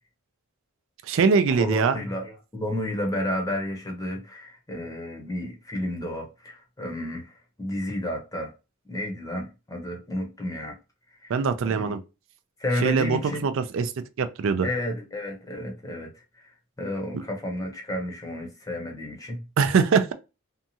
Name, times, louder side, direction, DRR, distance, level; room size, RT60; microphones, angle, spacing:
voice 1, 1.0-2.0 11.3-12.0 12.8-13.9 14.2-14.7 19.6-20.1, right 5 dB, 65° right, 0.4 m, -22 dB
voice 2, 1.6-8.5 8.9-10.7 11.2-11.3 11.6-11.9 12.6-13.4 14.6-16.1 16.4-16.5 16.8-19.4, left 1 dB, 15° left, 0.7 m, -31 dB
2.7 x 2.3 x 2.7 m
head